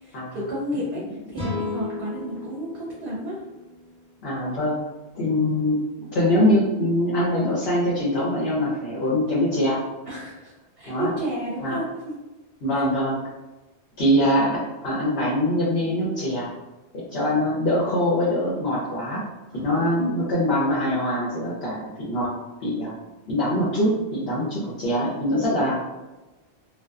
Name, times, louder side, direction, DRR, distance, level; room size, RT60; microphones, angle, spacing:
voice 1, 0.0-3.4 10.1-11.8 12.7-12.8 19.5-20.1, equal, 60° right, -5 dB, 0.8 m, -32 dB
sound 1, 1.3-4.6, left 3 dB, 5° left, 0.8 m, -35 dB
voice 2, 4.2-4.8 5.1-5.8 6.1-9.8 10.9-11.1 11.6-11.8 12.6-13.2 14.0-16.5 16.9-19.3 19.5-22.3 22.6-22.9 23.3-25.8, left 1 dB, 70° left, -8 dB, 0.9 m, -23 dB
2.6 x 2.1 x 2.3 m, 1.1 s
omnidirectional pair, 1.1 m